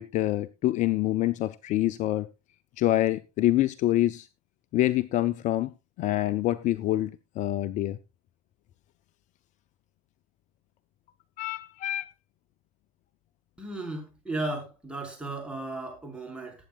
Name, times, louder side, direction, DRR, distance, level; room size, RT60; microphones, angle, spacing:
voice 1, 0.0-2.3 2.8-4.3 4.7-5.7 6.0-8.0 11.4-12.1, left 14 dB, 40° left, 0.5 m, -26 dB
voice 2, 13.6-16.5, right 2 dB, 5° right, 4.9 m, -35 dB
19.5 x 8.6 x 2.4 m
figure-of-eight pair, 80°, 19 cm